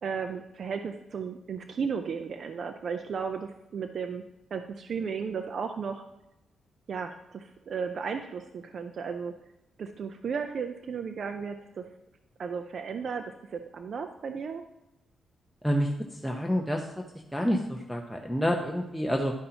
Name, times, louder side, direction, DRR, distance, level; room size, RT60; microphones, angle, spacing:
voice 1, 0.0-4.2 4.5-6.1 6.9-9.3 9.8-11.8 12.4-14.6, right 6 dB, 60° right, 6 dB, 0.5 m, -34 dB
voice 2, 15.6-16.9 17.3-19.3, equal, ahead, 0 dB, 0.8 m, -28 dB
11.0 x 5.4 x 2.9 m, 0.94 s
cardioid pair, 85°, 0 cm